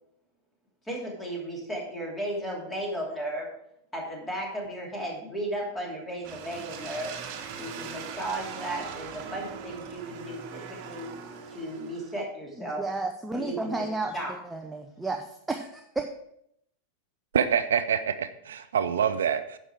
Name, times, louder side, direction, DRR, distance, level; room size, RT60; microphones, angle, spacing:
voice 1, 0.9-3.5 3.9-7.2 7.6-11.1 11.5-12.9 13.3-14.3, right 1 dB, 10° left, -1 dB, 2.9 m, -35 dB
sound 1, 6.2-12.3, right 7 dB, 40° right, 1.3 m, -41 dB
voice 2, 12.8-16.0, right 3 dB, 10° right, 4 dB, 0.7 m, -32 dB
voice 3, 17.3-19.6, right 8 dB, 65° right, 12 dB, 0.4 m, -26 dB
9.9 x 6.5 x 4.7 m, 0.75 s
figure-of-eight pair, 90°, 0 cm